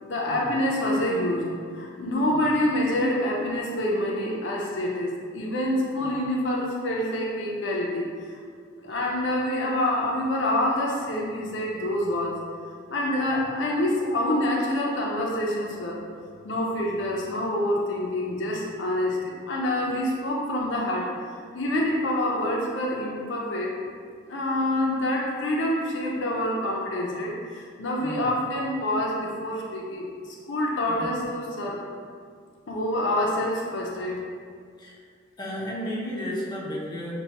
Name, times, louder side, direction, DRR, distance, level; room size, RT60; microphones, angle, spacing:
voice 1, 0.0-8.4 8.8-12.4 12.9-16.0 16.4-21.1 21.5-23.7 24.3-31.8 32.7-34.2, left 1 dB, 70° left, -2 dB, 0.5 m, -27 dB
voice 2, 28.0-28.3 30.9-31.1 34.8-35.0 35.4-37.1, equal, 20° left, -6 dB, 0.6 m, -34 dB
5.5 x 2.2 x 2.8 m, 2.1 s
head